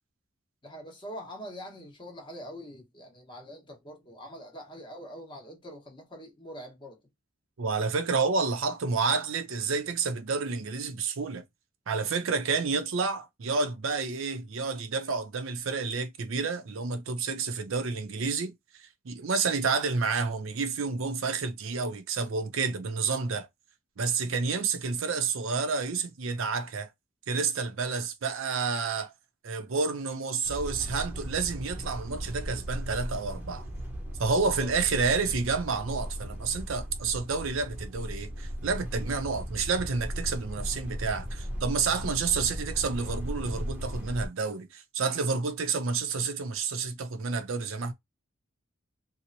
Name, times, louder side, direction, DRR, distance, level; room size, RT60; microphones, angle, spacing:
voice 1, 0.6-7.0 34.4-34.7, equal, 25° left, 0.9 m, -44 dB
voice 2, 7.6-11.4 11.9-18.5 19.0-23.5 24.0-26.9 27.3-29.1 29.4-33.7 34.2-47.9, right 4 dB, 85° right, 0.5 m, -29 dB
sound 1, 30.4-44.3, equal, 10° right, 0.7 m, -37 dB
2.9 x 2.0 x 2.5 m
head